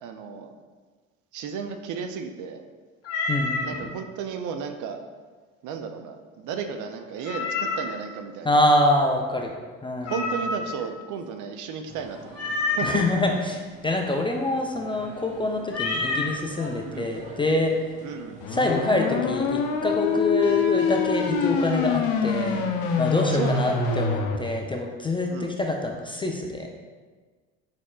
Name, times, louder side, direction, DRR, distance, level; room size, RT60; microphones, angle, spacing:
voice 1, 0.0-0.5 1.3-2.7 3.6-5.0 5.6-8.6 10.1-12.4 12.7-13.4 16.8-17.2 18.0-18.5 23.2-23.8 25.3-25.5, right 6 dB, 50° right, 7 dB, 0.5 m, -34 dB
Meow, 3.0-3.8 7.2-8.0 10.0-10.8 12.3-13.1 15.7-16.3, left 3 dB, 40° left, 0.9 m, -28 dB
voice 2, 3.3-3.9 8.4-9.5 9.8-10.4 12.8-17.7 18.5-22.6 23.0-26.7, left 2 dB, 15° left, 1 dB, 0.4 m, -25 dB
sound 1, 11.8-23.9, right 1 dB, 20° right, 1.1 m, -47 dB
sound 2, 18.4-24.4, left 5 dB, 70° left, 0.6 m, -25 dB
4.3 x 4.1 x 2.3 m, 1.4 s
hypercardioid pair, 70°, 38 cm